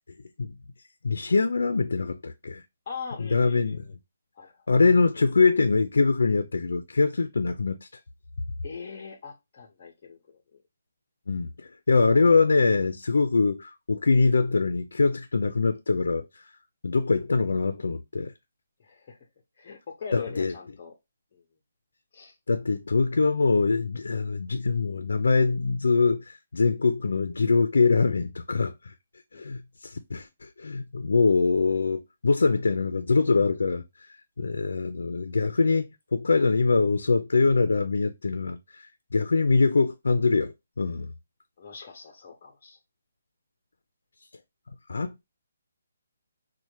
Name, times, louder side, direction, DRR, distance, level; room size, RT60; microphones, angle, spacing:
voice 1, 1.0-2.6 3.2-3.8 4.7-7.9 11.3-16.5 16.8-18.3 20.1-20.5 22.5-28.9 29.3-33.8 34.4-41.1 44.9-45.1, left 4 dB, 90° left, 0.4 m, -23 dB
voice 2, 2.9-4.0 4.4-4.6 8.6-10.2 10.5-10.6 18.8-19.2 19.6-20.9 21.3-21.4 22.1-22.4 29.3-29.5 41.6-42.8, left 5 dB, 30° left, 0.6 m, -41 dB
4.2 x 2.1 x 3.0 m
hypercardioid pair, 170°, 0 cm